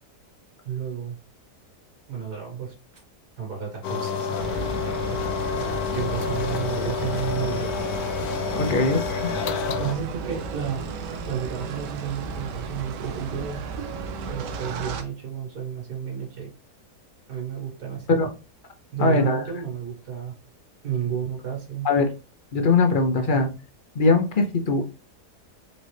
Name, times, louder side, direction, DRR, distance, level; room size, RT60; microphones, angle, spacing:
voice 1, 0.6-1.2 2.1-2.7 3.4-4.5 5.0-7.8 8.6-8.9 9.4-13.7 14.3-16.5 17.3-18.1 18.9-20.4 20.8-21.9 23.2-23.4, right 8 dB, 70° right, -1 dB, 2.1 m, -32 dB
sound 1, 3.8-10.0, left 6 dB, 70° left, 1.1 m, -28 dB
sound 2, 4.4-15.0, right 4 dB, 90° right, 1.3 m, -34 dB
voice 2, 8.5-9.2 18.1-18.3 19.0-19.4 21.8-22.1 22.5-23.5 23.9-24.8, left 3 dB, 55° left, 5 dB, 0.5 m, -21 dB
4.3 x 3.9 x 3.2 m, 0.30 s
omnidirectional pair, 1.8 m